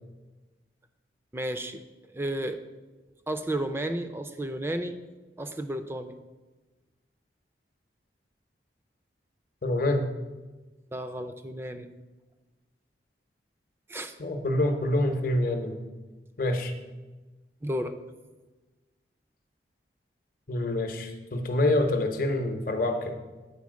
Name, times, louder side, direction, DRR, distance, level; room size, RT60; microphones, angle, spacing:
voice 1, 1.3-1.8 2.1-2.6 3.3-5.0 5.4-6.1 10.9-11.9 13.9-14.1 17.6-17.9, right 1 dB, 15° right, 9 dB, 0.4 m, -32 dB
voice 2, 9.6-10.1 14.2-15.8 16.4-16.7 20.5-23.2, left 1 dB, 50° left, 5 dB, 0.8 m, -26 dB
8.3 x 4.3 x 6.2 m, 1.2 s
head